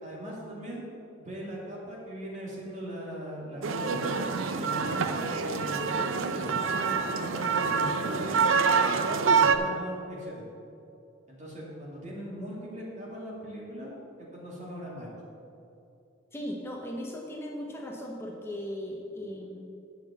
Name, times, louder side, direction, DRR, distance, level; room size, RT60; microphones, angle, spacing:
voice 1, 0.0-0.8 1.2-8.4 8.9-10.4 11.3-15.1, equal, 35° right, -4 dB, 2.5 m, -40 dB
sound 1, 3.6-9.6, right 5 dB, 85° right, 0.6 m, -26 dB
voice 2, 16.3-19.7, equal, 10° left, -1 dB, 0.8 m, -37 dB
9.6 x 5.9 x 7.0 m, 2.7 s
head